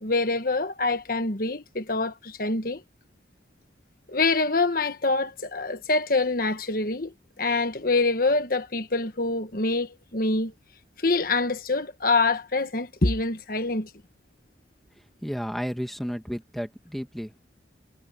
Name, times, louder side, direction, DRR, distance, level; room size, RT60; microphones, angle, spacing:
voice 1, 0.0-2.8 4.1-10.5 11.0-13.9, left 3 dB, 50° left, 1.5 m, -25 dB
voice 2, 15.2-17.4, equal, ahead, 1.8 m, -32 dB
head